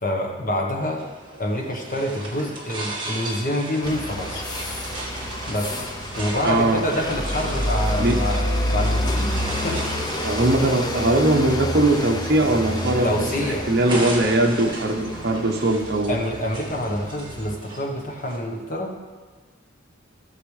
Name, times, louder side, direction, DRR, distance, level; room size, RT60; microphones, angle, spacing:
voice 1, 0.0-1.0 1.4-4.4 5.5-5.8 6.1-9.8 11.2-11.3 13.0-13.7 16.1-18.9, left 1 dB, 40° left, 1 dB, 1.2 m, -27 dB
sound 1, 0.8-18.4, right 1 dB, 25° right, 1.7 m, -36 dB
sound 2, 3.8-17.5, left 1 dB, 20° left, 0.6 m, -28 dB
voice 2, 6.4-6.8 8.0-8.2 10.2-13.1 13.4-16.2, right 2 dB, 50° right, 2 dB, 1.0 m, -20 dB
15.5 x 7.0 x 3.3 m, 1.4 s
head